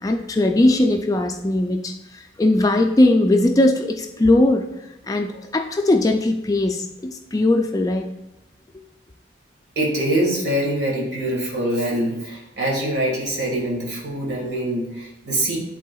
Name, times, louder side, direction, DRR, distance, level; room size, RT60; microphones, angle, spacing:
voice 1, 0.0-4.6 5.1-8.1, left 1 dB, 20° left, 5 dB, 0.3 m, -19 dB
voice 2, 9.7-15.6, right 1 dB, 65° right, -2 dB, 1.7 m, -24 dB
11.0 x 3.7 x 2.3 m, 0.92 s
head